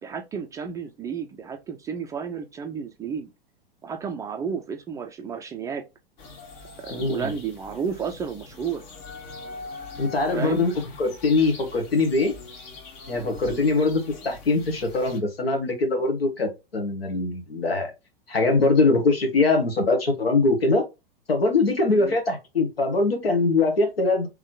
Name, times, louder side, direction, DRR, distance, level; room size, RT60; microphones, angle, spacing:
voice 1, 0.0-3.3 3.8-5.8 6.8-8.8 10.3-10.6 13.5-13.7 21.9-22.2, right 6 dB, 10° right, 0.3 m, -32 dB
sound 1, 6.2-15.2, left 3 dB, 50° left, 1.4 m, -42 dB
voice 2, 6.9-7.3 10.0-10.7 11.0-12.3 13.1-17.9 18.3-20.8 21.3-24.3, left 3 dB, 75° left, 1.4 m, -22 dB
3.6 x 3.2 x 3.7 m
figure-of-eight pair, 95°, 30 cm